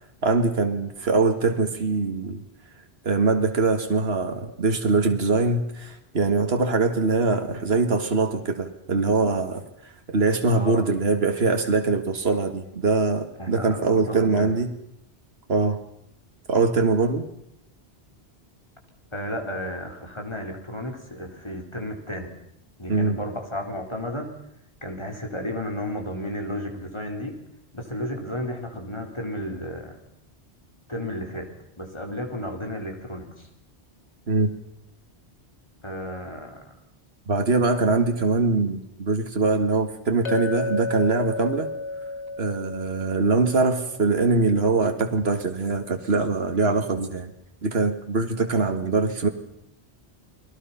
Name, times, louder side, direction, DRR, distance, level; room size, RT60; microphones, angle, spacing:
voice 1, 0.2-2.4 3.0-14.7 15.5-15.8 16.5-17.3 22.9-23.2 34.3-34.5 37.3-41.7 42.4-47.3 47.6-49.3, right 3 dB, 65° right, 6 dB, 2.1 m, -23 dB
voice 2, 10.5-10.9 13.4-14.5 19.1-22.3 22.8-24.3 24.8-27.4 27.7-30.0 30.9-31.5 31.8-33.5 35.8-36.8 39.5-39.6, left 1 dB, 25° left, 2 dB, 4.0 m, -33 dB
Chink clink, 40.2-44.7, left 3 dB, 90° left, 2.2 m, -33 dB
30.0 x 21.5 x 5.7 m, 0.76 s
omnidirectional pair, 1.1 m